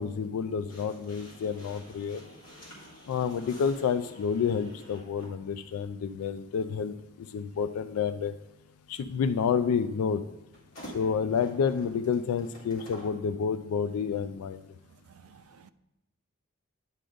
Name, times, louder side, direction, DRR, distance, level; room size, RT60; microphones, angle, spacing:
voice 1, 0.0-2.2 3.1-8.3 8.9-10.2 10.9-14.6, left 6 dB, 90° left, 0.3 m, -29 dB
sound 1, 0.7-5.4 6.5-6.7 10.5-13.2, equal, 70° left, 2.4 m, -49 dB
voice 2, 15.1-15.7, right 7 dB, 70° right, 0.3 m, -55 dB
9.7 x 3.9 x 5.0 m
head